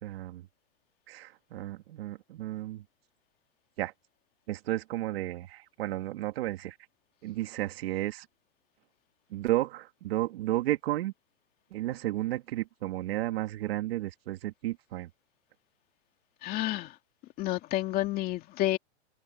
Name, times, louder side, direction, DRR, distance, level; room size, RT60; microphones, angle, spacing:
voice 1, 0.0-0.5 1.1-2.8 3.8-3.9 4.5-6.8 7.2-8.3 9.3-11.1 11.7-15.1, right 16 dB, 55° right, 2.9 m, -33 dB
voice 2, 16.4-16.9 17.4-18.8, left 15 dB, 25° left, 2.3 m, -30 dB
hypercardioid pair, 155°, 35 cm